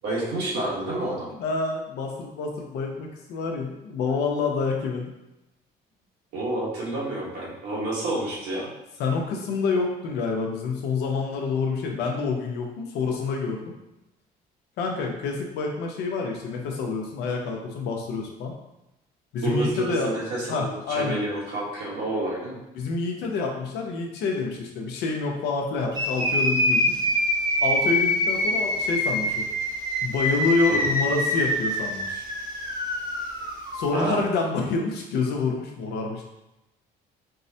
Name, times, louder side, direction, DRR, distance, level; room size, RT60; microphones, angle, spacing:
voice 1, 0.0-1.3 6.3-8.7 19.4-22.6 30.7-30.8 33.9-34.2, right 2 dB, 85° right, -5 dB, 1.2 m, -29 dB
voice 2, 1.4-5.1 9.0-13.7 14.8-18.5 19.3-20.1 20.5-21.2 22.7-27.0 27.6-29.5 30.0-32.3 33.7-36.2, left 4 dB, 80° left, 1 dB, 0.7 m, -27 dB
sound 1, 25.9-33.9, equal, 25° right, 0.7 m, -25 dB
4.5 x 2.1 x 2.7 m, 0.94 s
cardioid pair, 110°, 17 cm